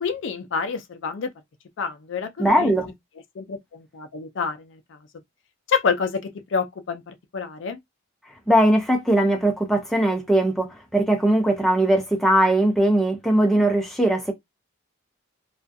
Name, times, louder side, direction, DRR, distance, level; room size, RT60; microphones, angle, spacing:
voice 1, 0.0-1.3 1.8-2.7 3.3-5.0 5.7-7.8, left 5 dB, 60° left, 0.4 m, -28 dB
voice 2, 2.4-2.9 8.5-14.3, right 1 dB, ahead, 0.5 m, -20 dB
2.4 x 2.3 x 2.5 m
head